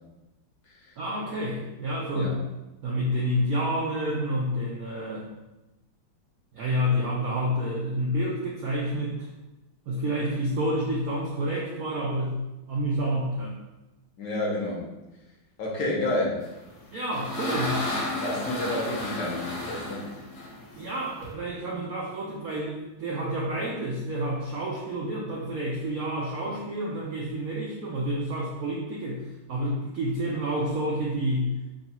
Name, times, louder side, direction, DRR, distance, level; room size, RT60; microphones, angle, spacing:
voice 1, 1.0-2.4 2.8-5.3 6.5-9.3 9.9-12.4 12.7-13.6 16.9-17.8 20.7-31.5, equal, 75° right, -3 dB, 0.8 m, -29 dB
voice 2, 14.2-14.9 15.6-16.4 18.2-20.1, left 1 dB, 70° left, -4 dB, 1.4 m, -29 dB
sound 1, 16.6-21.3, left 1 dB, 50° left, 0.9 m, -32 dB
3.8 x 2.3 x 4.0 m, 1.0 s
omnidirectional pair, 2.2 m